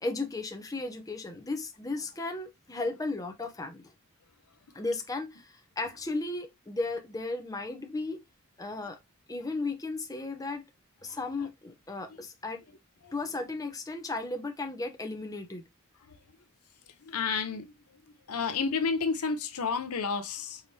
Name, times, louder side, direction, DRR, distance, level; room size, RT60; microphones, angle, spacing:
voice 1, 0.0-3.9 4.7-8.2 8.6-9.0 9.3-10.6 11.0-12.6 13.1-15.6, left 2 dB, 15° left, 0.7 m, -35 dB
voice 2, 11.1-11.5 17.0-17.7 18.3-20.6, left 5 dB, 80° left, 0.7 m, -31 dB
4.9 x 3.2 x 2.7 m
head